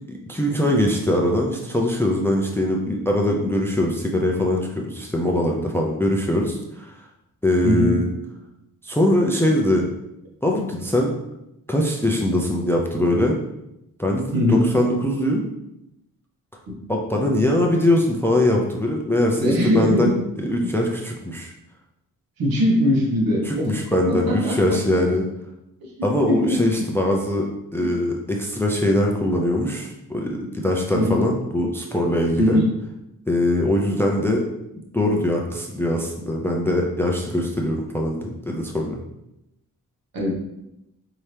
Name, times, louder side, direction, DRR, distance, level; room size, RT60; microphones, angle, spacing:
voice 1, 0.1-7.1 7.4-8.1 8.8-9.8 10.4-11.1 11.7-13.4 14.0-15.4 16.9-21.5 23.5-25.3 26.0-27.5 27.7-32.6 33.3-34.4 34.9-39.0, left 1 dB, 5° left, 1 dB, 0.4 m, -22 dB
voice 2, 14.3-14.6 16.7-16.8 19.4-20.1 20.6-20.7 22.4-23.7 24.1-24.8 25.8-26.6 27.8-27.9 30.9-31.3 32.4-32.7 40.1-40.3, left 1 dB, 75° right, -2 dB, 1.3 m, -21 dB
4.6 x 2.7 x 3.3 m, 0.86 s
wide cardioid pair, 155°, 35 cm